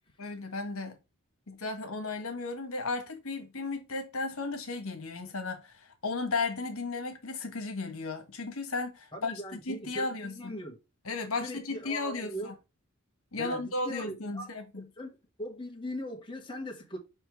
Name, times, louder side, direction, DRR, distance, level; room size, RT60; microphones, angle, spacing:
voice 1, 0.2-1.0 1.5-10.5 11.0-12.5 13.3-14.9, left 3 dB, 75° left, 1.4 m, -35 dB
voice 2, 9.1-10.8 11.4-12.5 13.4-14.4 14.8-17.0, equal, 20° left, 1.2 m, -40 dB
6.8 x 3.2 x 4.6 m
head